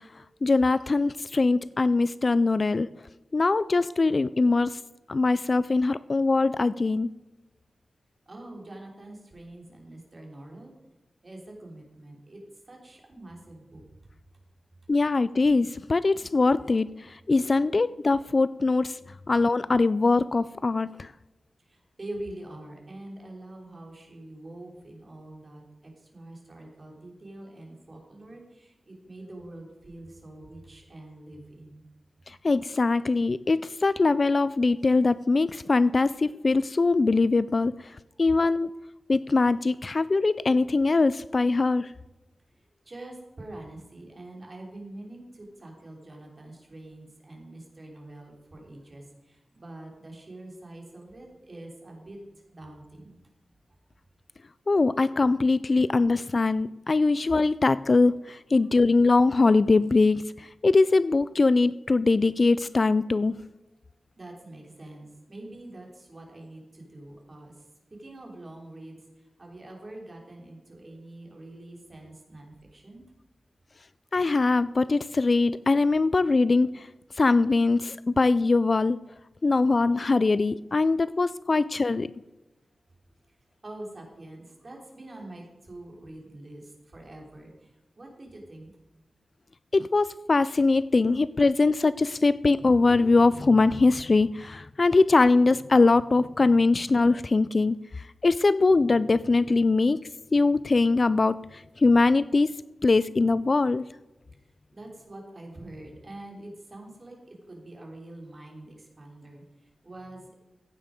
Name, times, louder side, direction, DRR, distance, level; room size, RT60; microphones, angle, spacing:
voice 1, 0.4-2.9 3.3-4.8 5.1-7.1 14.9-19.0 19.3-21.1 32.3-37.7 38.2-38.7 39.1-41.9 54.7-63.4 74.1-76.9 77.2-79.0 79.4-82.1 89.7-97.8 98.2-100.0 100.3-102.5 102.8-103.8, left 3 dB, 35° left, 16 dB, 0.3 m, -22 dB
voice 2, 8.2-10.7 11.2-12.4 12.7-13.8 21.6-31.8 37.6-37.7 42.8-52.2 52.5-53.2 58.5-58.7 64.2-67.6 67.9-73.1 83.3-83.4 83.6-88.7 104.7-110.3, right 1 dB, 35° right, 0 dB, 3.4 m, -45 dB
15.5 x 9.1 x 5.1 m, 1.0 s
wide cardioid pair, 145°, 0 cm